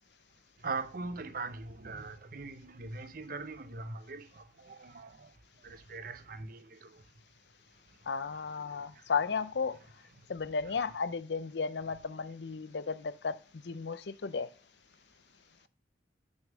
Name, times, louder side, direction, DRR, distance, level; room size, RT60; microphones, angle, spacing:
voice 1, 0.6-5.3 5.6-7.0 8.7-9.0, right 3 dB, 55° right, 0.7 m, -41 dB
voice 2, 8.1-9.8 10.3-14.5, left 5 dB, 75° left, 0.6 m, -34 dB
6.4 x 5.4 x 6.2 m
head